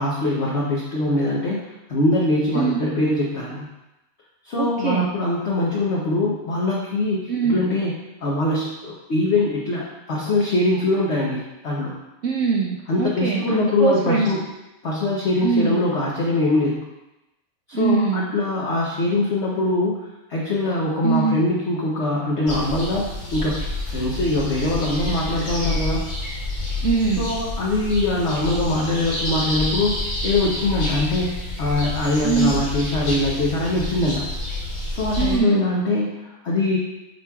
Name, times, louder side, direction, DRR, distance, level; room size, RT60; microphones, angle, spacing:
voice 1, 0.0-1.6 1.9-3.7 4.4-7.9 8.2-11.9 12.9-14.5 14.8-16.9 17.7-20.0 20.3-26.1 27.2-34.3 34.9-36.8, left 2 dB, 50° left, -4 dB, 1.0 m, -23 dB
voice 2, 4.6-5.1 7.3-7.6 12.2-14.3 15.4-15.8 17.7-18.3 21.0-21.4 26.8-27.3 32.2-32.5 35.2-35.6, right 5 dB, 70° right, -1 dB, 0.7 m, -22 dB
sound 1, 22.5-35.4, left 2 dB, 80° left, 2.0 m, -28 dB
9.5 x 4.5 x 2.3 m, 0.97 s
omnidirectional pair, 1.8 m